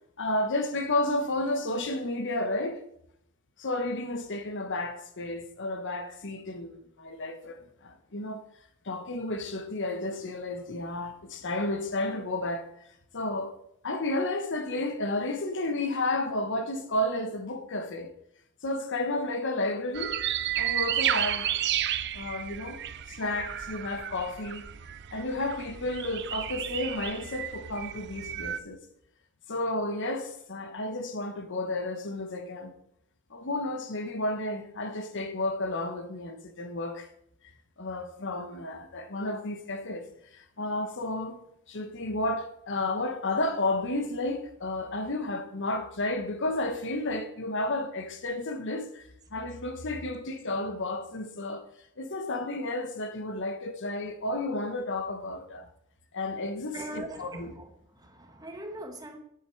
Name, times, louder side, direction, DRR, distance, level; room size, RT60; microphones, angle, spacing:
voice 1, 0.2-2.8 3.6-8.4 8.8-12.7 13.1-13.5 13.8-18.1 18.6-20.2 20.5-21.5 22.1-22.8 23.1-24.7 25.1-28.8 29.5-32.7 33.3-37.1 37.8-41.4 41.7-51.7 52.0-55.7 56.1-57.5, left 2 dB, 55° left, 1.1 m, -32 dB
sound 1, 19.9-28.6, right 11 dB, 55° right, 0.5 m, -32 dB
voice 2, 56.7-59.2, right 1 dB, 20° right, 1.3 m, -41 dB
10.5 x 8.7 x 4.6 m
head